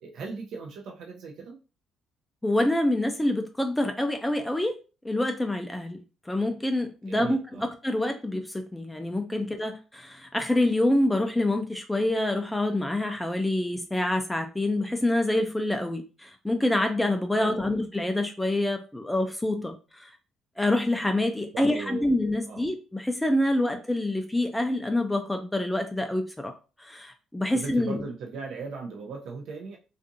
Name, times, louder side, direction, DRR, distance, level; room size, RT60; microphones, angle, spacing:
voice 1, 0.0-1.6 7.1-7.7 9.4-9.5 17.4-17.8 21.5-22.1 22.5-22.7 27.5-29.8, right 4 dB, 70° right, 1 dB, 0.4 m, -38 dB
voice 2, 2.4-4.8 5.0-6.0 6.3-7.4 7.8-20.1 20.6-26.5 26.8-28.0, left 1 dB, 10° left, 5 dB, 0.3 m, -26 dB
2.5 x 2.4 x 2.5 m, 0.33 s
cardioid pair, 90°, 0 cm